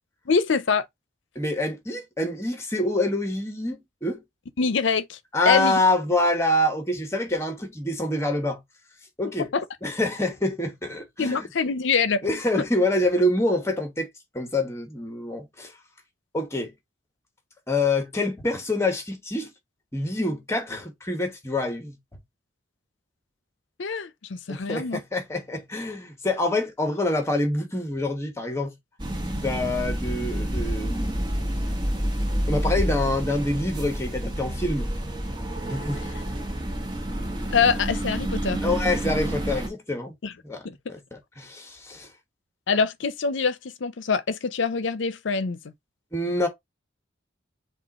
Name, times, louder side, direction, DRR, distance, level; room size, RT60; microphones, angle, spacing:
voice 1, 0.3-0.9 4.6-5.2 5.5-5.8 9.4-9.6 11.2-12.2 23.8-25.0 37.5-38.6 40.2-40.3 40.6-40.8 42.7-45.6, left 5 dB, 70° left, 0.6 m, -24 dB
voice 2, 1.3-4.2 5.3-8.6 9.2-9.5 9.8-11.5 12.2-14.1 14.3-15.7 16.3-16.7 17.7-19.5 19.9-22.0 24.5-28.7 29.4-31.4 32.5-34.9 35.6-36.0 38.6-40.1 40.4-40.6 40.9-42.1 46.1-46.5, left 1 dB, 15° left, 1.1 m, -26 dB
sound 1, 29.0-39.7, equal, 25° right, 1.1 m, -28 dB
5.4 x 2.4 x 4.1 m
head